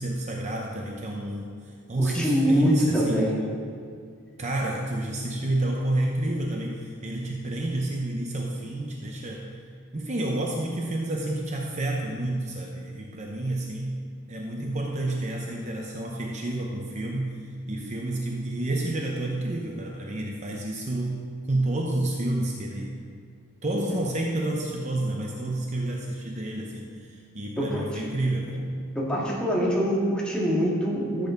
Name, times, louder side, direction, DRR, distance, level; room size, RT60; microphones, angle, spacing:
voice 1, 0.0-3.3 4.4-9.5 9.9-14.0 14.3-22.9 23.6-28.6, right 1 dB, 35° right, 0 dB, 0.7 m, -29 dB
voice 2, 2.0-3.5 27.6-28.0 29.0-31.3, equal, 5° left, -6 dB, 2.0 m, -24 dB
14.0 x 7.7 x 3.9 m, 2.2 s
head